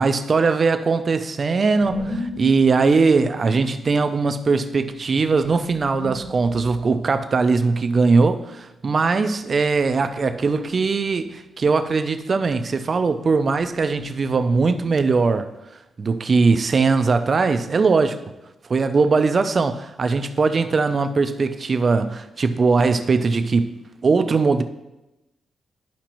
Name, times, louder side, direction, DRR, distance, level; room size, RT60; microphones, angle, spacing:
voice 1, 0.0-15.5 16.0-18.2 18.7-23.7 24.0-24.6, right 4 dB, 35° right, 0.4 m, -20 dB
sound 1, 1.8-7.0 9.7-10.4 10.7-11.1 13.6-15.0, left 2 dB, 80° left, 2.3 m, -35 dB
11.5 x 5.0 x 3.0 m
wide cardioid pair, 140°, 0 cm